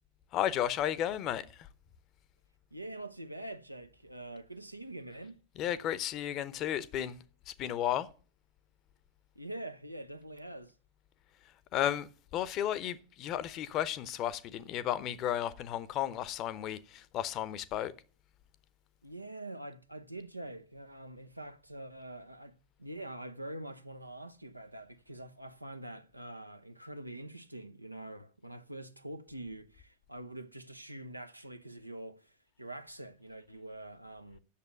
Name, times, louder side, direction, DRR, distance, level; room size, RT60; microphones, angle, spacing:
voice 1, 0.3-1.4 5.6-7.2 7.6-8.1 11.7-12.1 12.3-17.9, left 11 dB, 35° left, 0.8 m, -33 dB
voice 2, 2.7-5.4 9.4-10.7 19.0-22.5 22.8-32.3 32.6-34.4, right 1 dB, 90° right, 0.7 m, -45 dB
8.6 x 6.8 x 8.0 m
figure-of-eight pair, 90°, 0 cm